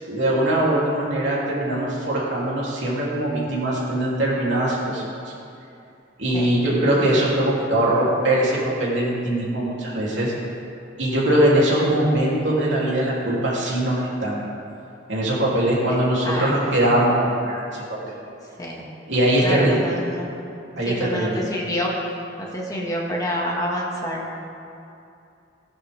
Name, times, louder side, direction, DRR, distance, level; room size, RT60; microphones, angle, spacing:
voice 1, 0.1-5.0 6.2-10.3 11.0-14.4 15.1-18.1 19.1-19.8 20.8-21.4, right 1 dB, 75° right, -6 dB, 3.3 m, -21 dB
voice 2, 16.2-16.7 18.6-18.8 19.4-20.3 20.9-21.9 22.4-24.4, equal, 20° left, -3 dB, 2.0 m, -28 dB
18.0 x 11.0 x 3.6 m, 2.6 s
head